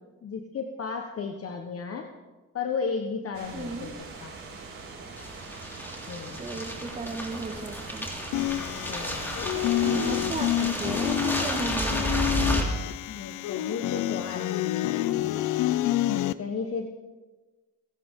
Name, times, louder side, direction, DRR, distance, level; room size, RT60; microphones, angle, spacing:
voice 1, 0.2-2.1 2.5-3.9 4.2-4.3 6.1-6.5 8.9-9.4 13.1-15.2 16.4-16.9, left 5 dB, 50° left, 4 dB, 1.3 m, -34 dB
sound 1, 3.3-11.6, right 3 dB, 50° right, 5.0 m, -42 dB
voice 2, 3.5-3.9 6.4-8.1 9.5-12.1, right 3 dB, 25° right, 3 dB, 1.9 m, -35 dB
sound 2, 5.2-12.6, equal, 5° left, 2.9 m, -32 dB
sound 3, 8.3-16.3, left 14 dB, 90° left, 0.6 m, -28 dB
26.0 x 11.5 x 3.8 m, 1.2 s
cardioid pair, 90°, 30 cm